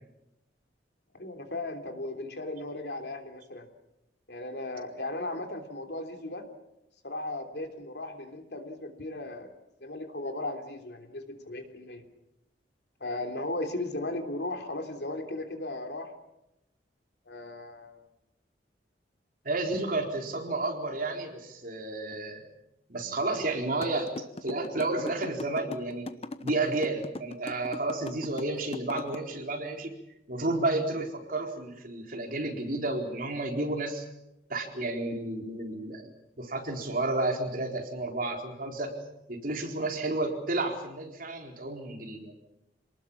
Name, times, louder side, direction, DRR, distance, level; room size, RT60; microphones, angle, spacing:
voice 1, 1.1-3.7 4.3-6.4 7.0-9.5 9.8-12.0 13.0-16.1 17.3-18.0, left 2 dB, 65° left, 5 dB, 3.2 m, -36 dB
voice 2, 19.4-22.4 22.9-26.1 26.4-29.9 30.3-34.1 34.5-36.1 36.4-38.9 39.3-42.3, right 2 dB, 50° right, 3 dB, 4.2 m, -31 dB
sound 1, 23.8-29.2, left 2 dB, 35° left, 1.0 m, -38 dB
27.5 x 19.5 x 7.3 m, 0.87 s
head